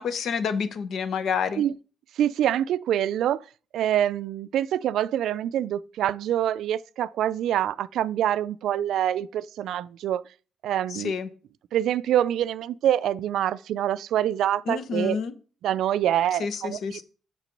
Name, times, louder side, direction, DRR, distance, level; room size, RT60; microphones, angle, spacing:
voice 1, 0.0-1.6 10.9-11.3 14.7-15.3 16.4-17.0, left 6 dB, 65° left, 1.0 m, -28 dB
voice 2, 2.2-3.4 3.7-10.2 10.6-11.1 11.7-15.2 15.6-17.0, right 11 dB, 80° right, 0.4 m, -25 dB
7.4 x 6.0 x 5.2 m
cardioid pair, 90°, 0 cm